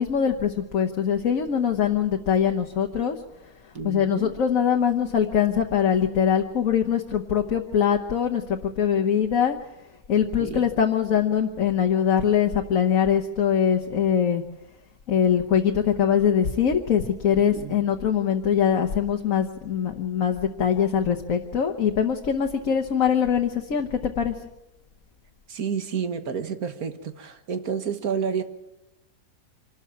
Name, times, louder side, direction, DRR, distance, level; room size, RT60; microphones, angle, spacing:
voice 1, 0.0-3.2 3.8-9.6 10.1-14.4 15.1-24.3, left 8 dB, 60° left, 3 dB, 1.5 m, -22 dB
voice 2, 3.7-4.3 10.4-10.7 17.5-17.7 25.5-28.4, right 6 dB, 75° right, 9 dB, 1.8 m, -30 dB
26.0 x 13.0 x 8.6 m, 0.94 s
omnidirectional pair, 1.6 m